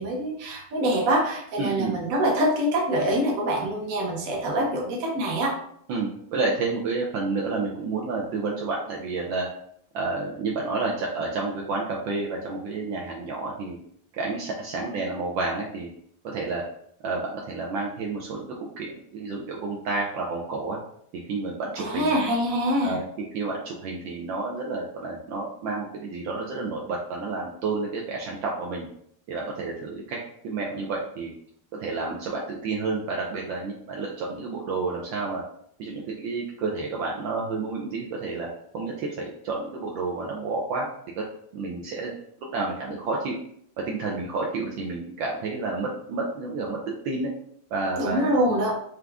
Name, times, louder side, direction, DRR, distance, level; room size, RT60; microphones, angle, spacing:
voice 1, 0.0-5.5 21.8-23.0 48.0-48.8, equal, 50° right, -1 dB, 1.1 m, -25 dB
voice 2, 1.6-1.9 5.9-9.5 9.9-13.8 14.1-15.9 16.2-16.6 17.0-20.8 21.2-22.2 22.8-28.9 29.3-30.2 30.4-31.3 31.7-35.4 35.8-38.5 38.7-40.9 41.2-41.3 41.5-42.1 42.4-43.4 43.9-47.3 47.7-48.6, right 3 dB, 75° right, -2 dB, 1.3 m, -30 dB
4.6 x 2.5 x 3.4 m, 0.67 s
omnidirectional pair, 2.4 m